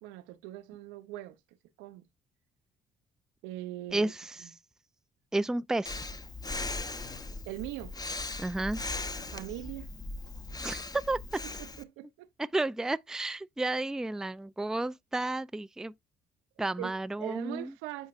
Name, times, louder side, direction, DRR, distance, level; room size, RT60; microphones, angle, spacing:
voice 1, 0.0-1.4 1.8-2.0 3.4-4.1 4.4-4.5 7.5-7.9 9.3-9.9 11.4-12.3 16.8-18.1, right 15 dB, 85° right, 0.8 m, -41 dB
voice 2, 3.9-4.4 5.3-6.0 8.4-8.8 10.6-11.4 12.4-15.9 16.6-17.7, right 2 dB, 5° right, 0.4 m, -32 dB
Breathing, 5.9-11.8, left 2 dB, 20° left, 0.9 m, -38 dB
8.7 x 4.5 x 2.5 m
supercardioid pair, 60°, 19 cm